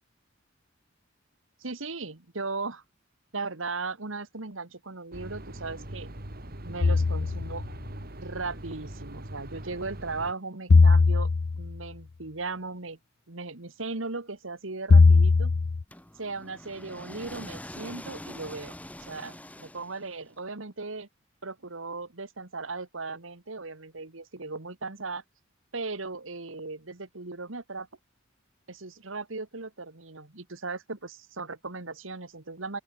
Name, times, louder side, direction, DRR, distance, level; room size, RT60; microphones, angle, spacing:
voice 1, 1.6-2.8 3.3-6.1 6.6-7.6 8.2-13.0 13.3-15.5 16.2-21.1 21.4-25.2 25.7-27.9 28.7-32.8, right 3 dB, 80° right, 2.0 m, -37 dB
sound 1, 5.1-10.3, right 1 dB, 50° right, 3.0 m, -41 dB
sound 2, 6.8-7.6 10.7-11.8 14.9-15.8, left 4 dB, 50° left, 0.5 m, -19 dB
sound 3, 15.9-20.3, left 1 dB, 5° left, 2.3 m, -44 dB
open air
head